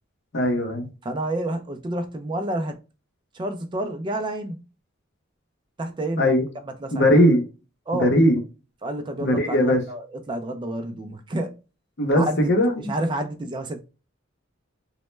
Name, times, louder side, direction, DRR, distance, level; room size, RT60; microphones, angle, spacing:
voice 1, 0.3-0.9 6.2-6.5 6.9-7.4 8.0-8.4 9.2-9.8 12.0-12.9, equal, 55° left, 0.7 m, -19 dB
voice 2, 1.0-2.8 3.3-4.6 5.8-6.3 6.6-7.0 7.9-8.1 8.8-11.6 12.1-12.5 12.9-13.8, right 1 dB, 25° right, 0.3 m, -29 dB
2.1 x 2.1 x 3.1 m
head